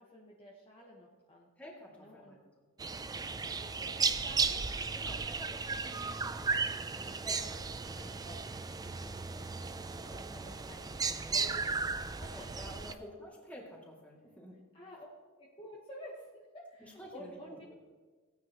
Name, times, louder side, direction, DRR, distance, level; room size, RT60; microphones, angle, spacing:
voice 1, 0.0-1.5 2.0-2.4 3.6-4.6 7.0-8.8 9.0-11.8 12.2-12.6 14.7-15.1 15.4-17.7, equal, 25° left, -4 dB, 1.3 m, -52 dB
voice 2, 1.6-2.4 4.9-6.6 6.9-8.0 12.3-14.6 17.0-17.4 17.7-17.8, equal, 5° left, -3 dB, 2.4 m, -50 dB
sound 1, 2.8-12.9, right 4 dB, 15° right, 0.4 m, -35 dB
17.5 x 9.4 x 3.0 m, 1.3 s
head